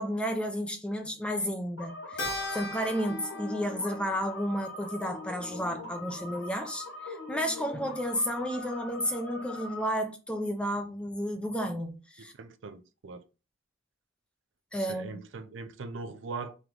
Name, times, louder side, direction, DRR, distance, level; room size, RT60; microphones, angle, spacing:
voice 1, 0.0-12.3 14.7-15.2, equal, 5° left, 0.4 m, -32 dB
sound 1, 1.8-9.9, left 2 dB, 85° left, 1.1 m, -42 dB
Keyboard (musical), 2.2-6.8, left 2 dB, 55° left, 1.1 m, -41 dB
voice 2, 12.3-13.2 14.7-16.6, right 4 dB, 70° right, 0.5 m, -40 dB
3.2 x 3.0 x 3.7 m
head